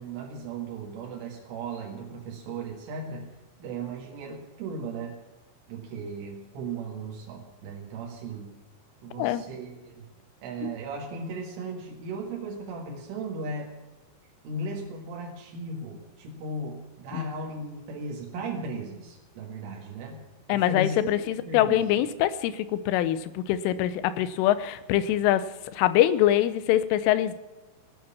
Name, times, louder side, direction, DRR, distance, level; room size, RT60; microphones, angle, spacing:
voice 1, 0.0-3.3 3.6-5.1 5.7-8.5 9.0-10.0 10.4-13.7 14.4-20.2 20.5-21.9, right 2 dB, 85° right, -1 dB, 4.4 m, -36 dB
voice 2, 20.5-27.3, left 12 dB, 90° left, 14 dB, 3.3 m, -24 dB
17.0 x 9.4 x 7.1 m, 1.2 s
omnidirectional pair, 5.5 m